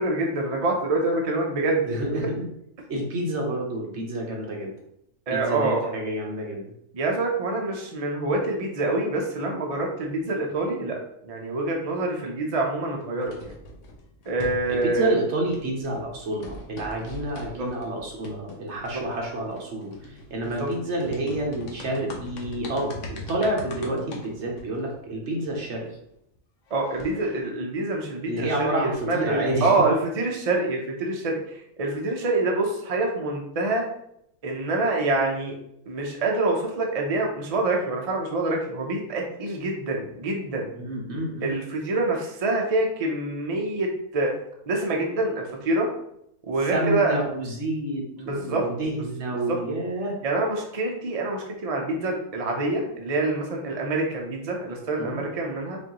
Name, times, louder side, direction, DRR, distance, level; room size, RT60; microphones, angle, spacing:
voice 1, 0.0-2.0 5.3-5.9 6.9-11.0 11.2-13.5 14.3-15.1 17.6-17.7 20.6-20.7 26.7-33.9 34.4-35.6 35.9-40.7 41.4-44.3 44.7-45.9 46.4-47.2 48.2-48.7 49.5-49.6 50.2-55.8, right 2 dB, 40° right, 0 dB, 0.5 m, -26 dB
voice 2, 1.8-2.5 2.9-4.7 5.3-6.7 14.7-25.9 28.2-29.9 40.7-41.5 46.7-50.1 55.0-55.2, right 1 dB, 60° right, -1 dB, 1.2 m, -29 dB
sound 1, 13.2-15.2 15.5-25.9 26.4-26.5 26.7-27.4, left 2 dB, 65° left, 1.1 m, -42 dB
5.1 x 2.6 x 2.9 m, 0.75 s
omnidirectional pair, 1.4 m